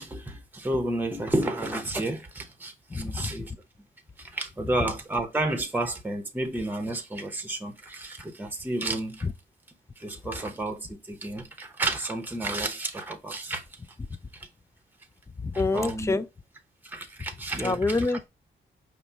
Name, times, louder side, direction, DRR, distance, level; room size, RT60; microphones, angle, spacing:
voice 1, 0.0-3.5 4.2-9.2 10.0-13.6 14.3-14.5 15.7-16.2 16.8-18.0, right 2 dB, 10° right, 0.8 m, -31 dB
voice 2, 2.9-3.4 9.2-9.3 15.4-16.3 17.6-18.3, left 3 dB, 15° left, 0.4 m, -27 dB
5.2 x 2.1 x 4.5 m
cardioid pair, 95°, 21 cm